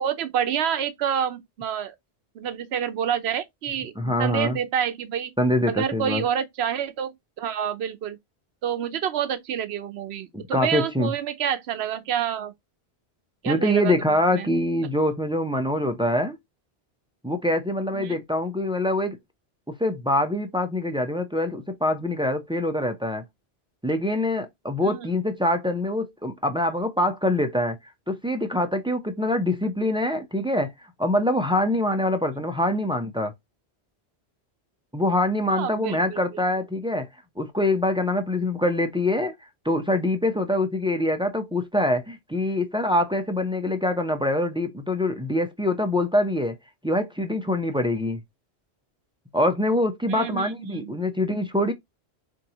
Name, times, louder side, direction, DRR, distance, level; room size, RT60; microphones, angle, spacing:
voice 1, 0.0-1.9 2.3-5.3 5.7-8.2 8.6-12.5 13.4-14.5 17.9-18.2 24.8-25.1 35.5-36.2 50.1-50.9, right 9 dB, 75° right, 0.9 m, -28 dB
voice 2, 4.0-4.6 5.4-6.2 10.3-11.1 13.5-16.4 17.2-19.2 19.8-23.2 23.8-27.8 28.1-30.7 31.0-33.3 34.9-37.1 37.4-39.3 39.6-46.5 46.8-48.2 49.3-51.7, left 1 dB, 10° right, 0.3 m, -24 dB
4.5 x 2.6 x 2.8 m
omnidirectional pair, 1.1 m